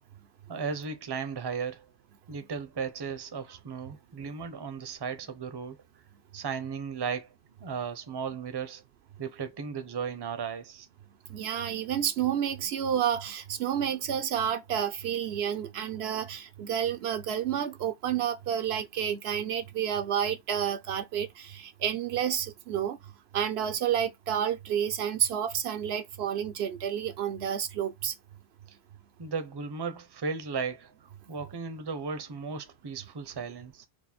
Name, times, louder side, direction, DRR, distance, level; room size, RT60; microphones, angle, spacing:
voice 1, 0.5-1.9 2.3-5.8 6.3-7.3 7.6-8.8 9.2-10.9 28.7-28.8 29.2-30.9 31.3-33.9, right 5 dB, 30° right, 0.6 m, -35 dB
voice 2, 11.3-23.0 23.3-28.1, right 9 dB, 75° right, 0.8 m, -30 dB
4.6 x 2.2 x 4.0 m
omnidirectional pair, 1.1 m